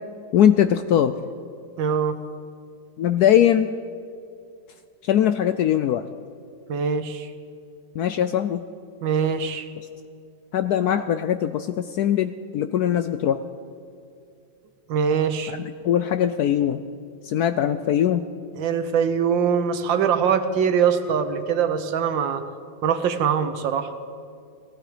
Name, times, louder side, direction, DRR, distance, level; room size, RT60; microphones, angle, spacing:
voice 1, 0.3-1.2 3.0-3.7 5.0-6.1 7.9-8.6 10.5-13.4 15.5-16.8 17.2-18.2, left 10 dB, 70° left, 10 dB, 0.9 m, -21 dB
voice 2, 1.8-2.2 6.7-7.3 9.0-9.7 14.9-15.6 18.6-22.4 22.8-23.9, right 7 dB, 80° right, 9 dB, 1.6 m, -22 dB
18.0 x 15.0 x 5.0 m, 2.3 s
omnidirectional pair, 2.0 m